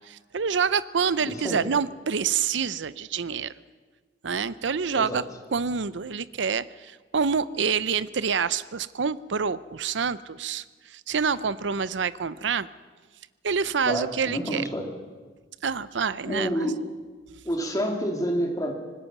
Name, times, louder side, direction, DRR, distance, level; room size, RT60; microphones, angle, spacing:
voice 1, 0.1-3.5 4.2-5.2 5.5-10.6 10.9-12.7 13.4-14.6 15.6-16.6, right 6 dB, 75° right, 17 dB, 0.6 m, -27 dB
voice 2, 1.2-1.6 4.9-5.2 13.8-14.9 16.3-16.8 17.4-18.7, equal, 20° left, 2 dB, 2.4 m, -28 dB
25.0 x 19.5 x 6.0 m, 1.4 s
head